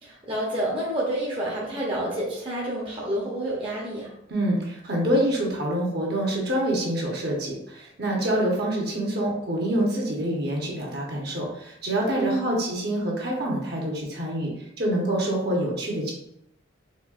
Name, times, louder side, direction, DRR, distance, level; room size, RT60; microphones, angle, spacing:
voice 1, 0.0-4.1 12.2-12.6, right 1 dB, 25° right, -6 dB, 0.7 m, -29 dB
voice 2, 4.3-14.5 14.8-16.1, right 1 dB, 55° right, -2 dB, 0.9 m, -26 dB
4.3 x 2.8 x 2.4 m, 0.78 s
head